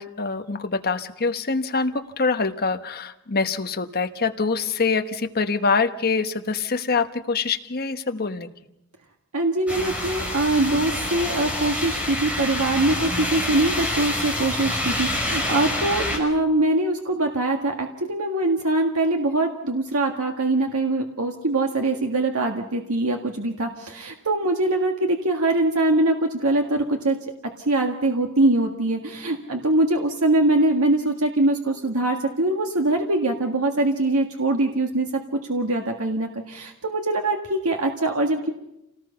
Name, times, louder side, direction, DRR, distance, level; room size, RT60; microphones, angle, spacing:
voice 1, 0.0-8.5, left 4 dB, 45° left, 8 dB, 1.2 m, -25 dB
voice 2, 9.3-27.2 27.7-38.5, right 2 dB, 80° right, 3 dB, 1.8 m, -23 dB
sound 1, 9.7-16.2, left 1 dB, 5° right, 5.0 m, -27 dB
28.5 x 18.5 x 5.7 m, 0.87 s
head